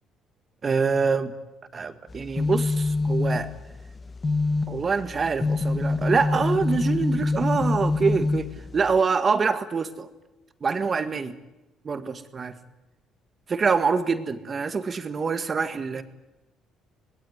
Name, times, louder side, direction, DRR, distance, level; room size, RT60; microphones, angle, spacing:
voice 1, 0.6-1.3 1.7-3.5 4.7-10.1 10.6-11.4 11.8-12.6 13.5-16.0, right 5 dB, 35° right, 10 dB, 1.9 m, -25 dB
sound 1, 2.1-9.0, left 3 dB, 25° left, 1.8 m, -26 dB
25.5 x 20.5 x 9.6 m, 1.0 s
cardioid pair, 105°, 0 cm